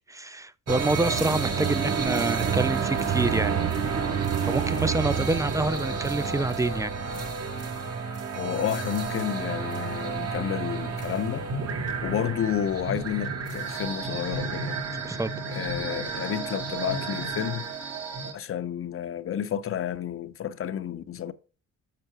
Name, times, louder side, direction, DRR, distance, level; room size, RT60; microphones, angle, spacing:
voice 1, 0.1-3.5 4.4-6.9 15.0-15.4, right 2 dB, 10° right, 0.4 m, -27 dB
sound 1, 0.7-18.3, right 5 dB, 55° right, 1.6 m, -30 dB
voice 2, 8.3-11.5 12.0-14.8 15.5-17.7 18.3-21.3, left 10 dB, 45° left, 0.7 m, -30 dB
6.7 x 4.5 x 6.0 m
cardioid pair, 90°, 30 cm